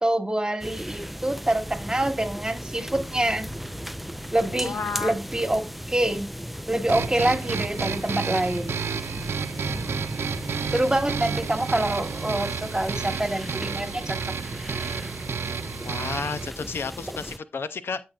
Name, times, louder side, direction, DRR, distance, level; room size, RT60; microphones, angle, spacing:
voice 1, 0.0-3.5 4.3-5.6 5.9-6.3 6.7-8.8 10.7-14.3, right 1 dB, 20° right, 1.4 m, -26 dB
sound 1, 0.6-17.4, equal, 5° right, 0.3 m, -36 dB
Guitar, 2.8-10.6, left 1 dB, 35° left, 3.0 m, -52 dB
voice 2, 4.6-5.1 15.8-18.0, left 5 dB, 75° left, 0.5 m, -32 dB
sound 2, 6.9-16.5, right 6 dB, 80° right, 0.4 m, -31 dB
13.5 x 4.7 x 2.4 m
cardioid pair, 45°, 4 cm